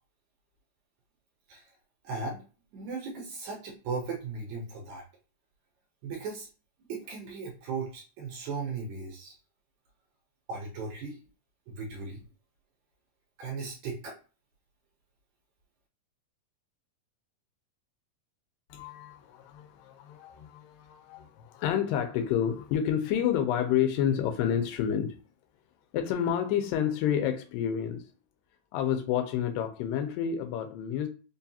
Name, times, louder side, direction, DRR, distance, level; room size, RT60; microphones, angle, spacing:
voice 1, 2.0-2.4 2.7-5.0 6.0-6.5 6.9-9.3 10.5-11.2 11.7-12.2 13.4-14.1, right 4 dB, 70° right, 1.9 m, -37 dB
voice 2, 18.7-25.2 25.9-28.0 28.7-31.1, left 9 dB, 90° left, 2.3 m, -29 dB
5.2 x 2.3 x 2.7 m
omnidirectional pair, 3.9 m